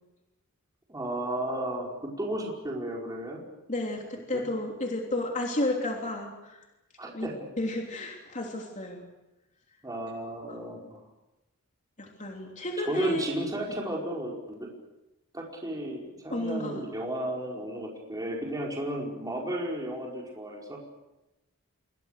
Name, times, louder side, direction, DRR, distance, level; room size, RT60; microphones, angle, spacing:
voice 1, 0.9-3.4 4.3-4.4 7.0-7.3 9.8-11.0 12.8-14.7 15.3-20.8, right 1 dB, 15° right, -2 dB, 5.0 m, -34 dB
voice 2, 3.7-6.6 7.1-7.3 7.6-9.1 10.5-10.6 12.0-13.2 13.7-13.8 16.3-16.8, left 1 dB, 35° left, 1 dB, 3.4 m, -32 dB
28.5 x 24.0 x 6.7 m, 0.99 s
head